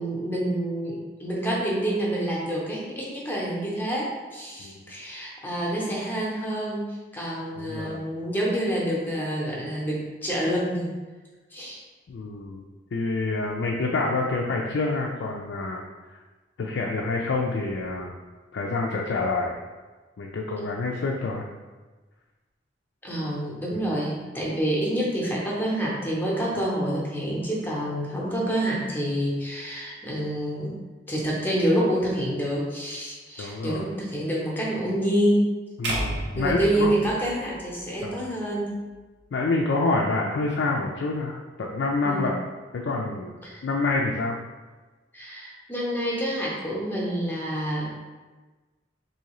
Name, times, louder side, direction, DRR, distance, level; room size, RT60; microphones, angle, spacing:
voice 1, 0.0-6.8 7.1-10.9 11.5-11.8 23.0-30.7 31.1-35.4 36.4-38.8 42.0-42.3 43.4-43.6 45.1-47.9, right 1 dB, 10° left, -5 dB, 0.7 m, -27 dB
voice 2, 7.6-8.0 12.1-12.6 12.9-15.8 16.1-16.2 16.6-18.1 18.5-19.6 20.2-21.4 23.7-23.8 33.4-33.9 35.8-36.9 38.0-38.2 39.3-42.4 42.7-43.4 43.6-44.4, left 3 dB, 75° left, -1 dB, 0.4 m, -27 dB
sound 1, 35.8-38.1, right 1 dB, 75° right, 0.7 m, -32 dB
3.8 x 2.7 x 3.0 m, 1.3 s
head